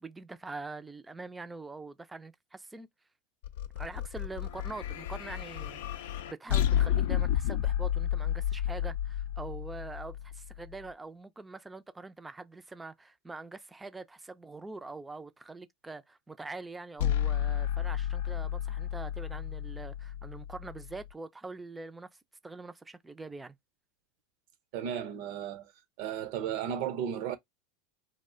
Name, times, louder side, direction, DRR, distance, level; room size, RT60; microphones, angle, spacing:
voice 1, 0.0-2.9 3.8-22.1 22.4-23.6, right 3 dB, 10° right, 0.4 m, -44 dB
sound 1, 3.4-10.7 17.0-21.1, left 10 dB, 70° left, 0.4 m, -32 dB
voice 2, 24.7-25.7 26.0-27.4, right 9 dB, 60° right, 0.6 m, -34 dB
2.4 x 2.1 x 3.5 m
hypercardioid pair, 95°, 0 cm